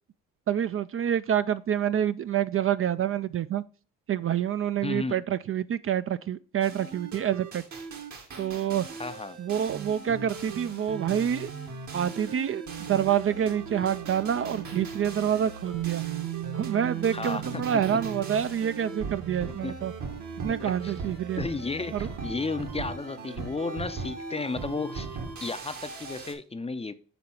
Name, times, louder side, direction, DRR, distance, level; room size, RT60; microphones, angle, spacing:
voice 1, 0.5-3.6 4.1-7.6 8.4-8.9 9.4-11.5 11.9-16.0 16.5-19.9 20.4-21.4 21.9-22.1, right 9 dB, 45° right, 0.4 m, -27 dB
voice 2, 4.8-5.2 9.0-9.4 17.1-17.6 17.9-18.0 19.6-19.8 20.4-20.9 21.4-25.1 25.4-26.9, left 3 dB, 20° left, 0.5 m, -33 dB
sound 1, 6.6-26.3, right 4 dB, 65° right, 1.5 m, -38 dB
Bass guitar, 15.7-19.7 20.8-20.9, right 17 dB, 85° right, 0.8 m, -38 dB
7.0 x 3.8 x 4.3 m
supercardioid pair, 60°, 32 cm